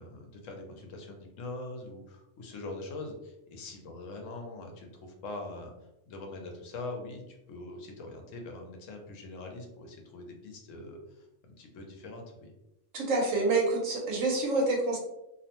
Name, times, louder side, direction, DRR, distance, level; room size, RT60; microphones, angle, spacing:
voice 1, 0.0-5.7 6.1-11.3 11.6-12.5, left 2 dB, 75° left, 3 dB, 1.0 m, -43 dB
voice 2, 12.9-15.0, right 2 dB, 80° right, 0 dB, 1.1 m, -27 dB
2.7 x 2.1 x 2.9 m, 0.89 s
omnidirectional pair, 1.3 m